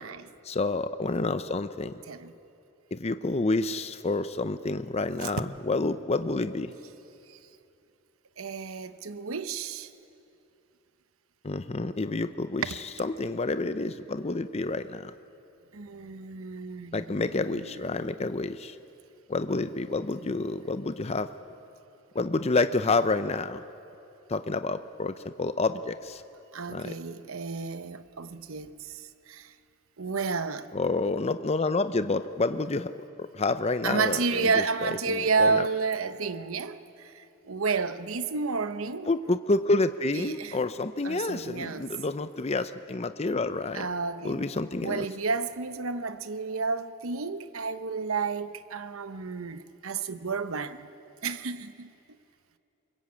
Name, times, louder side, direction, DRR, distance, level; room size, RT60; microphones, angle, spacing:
voice 1, 0.4-1.9 2.9-6.7 11.4-15.1 16.9-18.7 19.3-21.3 22.1-23.6 24.3-26.2 26.7-26.9 30.7-32.9 33.2-35.7 39.1-43.9 44.2-45.1, left 3 dB, 30° left, 0.6 m, -29 dB
voice 2, 8.4-9.9 15.7-17.3 17.5-17.8 26.5-29.5 30.0-30.7 33.8-39.1 40.1-40.6 41.0-41.9 43.7-44.4 44.8-50.9 51.2-51.9, right 4 dB, 70° right, 0.9 m, -31 dB
25.0 x 22.5 x 8.6 m
head